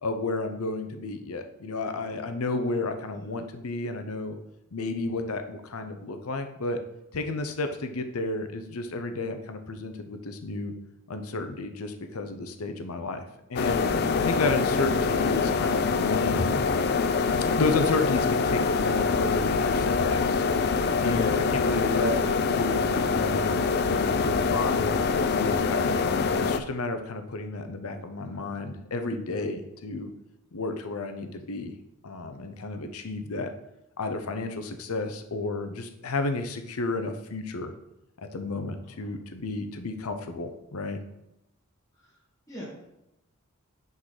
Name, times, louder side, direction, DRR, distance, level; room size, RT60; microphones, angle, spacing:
voice 1, 0.0-4.4 4.7-6.8 7.1-10.7 11.1-13.2 13.5-13.9 14.2-16.5 17.5-20.4 21.0-23.7 24.2-25.0 25.3-30.1 30.5-31.7 32.0-33.5 34.0-37.7 38.2-41.0, left 3 dB, 80° left, 8 dB, 0.7 m, -32 dB
voice 2, 3.1-3.4 28.3-28.5 39.0-39.1 41.9-42.2 42.5-42.7, equal, 15° left, -8 dB, 1.5 m, -45 dB
sound 1, 13.6-26.6, left 4 dB, 45° left, 0.4 m, -25 dB
6.0 x 4.0 x 4.9 m, 0.87 s
head